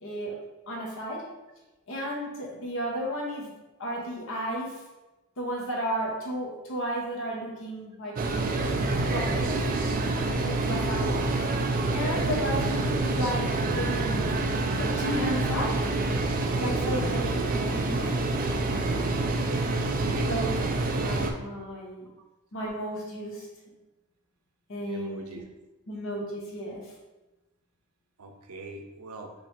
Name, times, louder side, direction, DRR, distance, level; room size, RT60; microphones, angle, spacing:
voice 1, 0.0-0.4 0.7-1.3 1.9-3.5 3.8-4.8 5.4-8.6 9.1-9.7 10.4-11.2 11.9-14.3 14.7-15.8 16.6-19.1 20.2-20.7 21.0-22.1 22.5-23.5 24.7-25.4 25.9-26.9, equal, 60° left, -2 dB, 1.0 m, -33 dB
sound 1, 8.2-21.3, right 2 dB, 40° right, 0.4 m, -27 dB
voice 2, 19.9-20.3 24.9-25.4 28.2-29.3, right 2 dB, 80° right, 3 dB, 0.6 m, -41 dB
3.2 x 3.0 x 4.3 m, 1.1 s
head